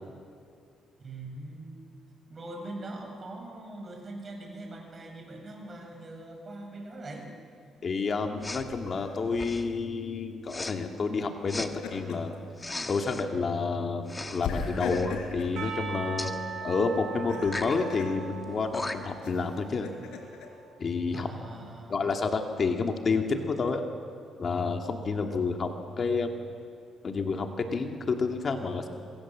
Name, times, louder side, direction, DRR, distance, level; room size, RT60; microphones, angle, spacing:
voice 1, 1.0-1.8 2.3-7.3 21.1-21.9, right 2 dB, 35° right, 2 dB, 7.1 m, -42 dB
voice 2, 7.8-12.3 12.9-16.3 16.6-19.9 20.8-21.3 21.9-23.8 24.4-26.3 27.0-28.9, left 4 dB, 45° left, 4 dB, 2.2 m, -29 dB
Respiratory sounds, 8.4-8.7 9.3-9.8 10.5-10.8 11.5-11.7 12.6-13.3 14.1-14.5 14.8-15.1 16.2-16.4 17.4-17.8 18.4-18.5 18.7-19.2, left 2 dB, 20° left, 1.7 m, -37 dB
Laughter, 8.6-9.1 11.4-12.4 12.8-12.9 14.4-15.6 17.1-18.1 19.2-20.5, left 5 dB, 85° left, 4.6 m, -38 dB
Percussion / Church bell, 15.6-20.6, right 6 dB, 75° right, 6.7 m, -40 dB
26.5 x 22.5 x 7.5 m, 2.3 s
cardioid pair, 90°, 0 cm